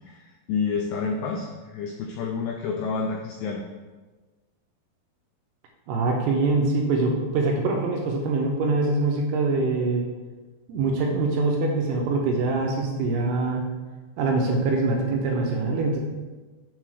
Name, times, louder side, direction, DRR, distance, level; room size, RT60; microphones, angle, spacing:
voice 1, 0.0-3.6, left 5 dB, 90° left, 1 dB, 2.2 m, -29 dB
voice 2, 5.9-10.0 10.7-13.6 14.2-16.0, right 3 dB, 75° right, 1 dB, 2.5 m, -24 dB
7.4 x 3.8 x 6.4 m, 1.3 s
omnidirectional pair, 5.3 m